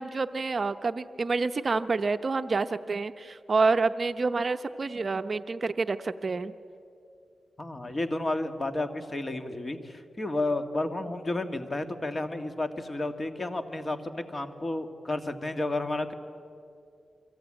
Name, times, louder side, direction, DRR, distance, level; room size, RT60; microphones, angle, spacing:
voice 1, 0.0-6.5, right 4 dB, 45° right, 10 dB, 0.7 m, -28 dB
voice 2, 7.6-16.1, left 2 dB, 30° left, 7 dB, 2.0 m, -31 dB
28.0 x 24.0 x 8.9 m, 2.5 s
wide cardioid pair, 95°, 0 cm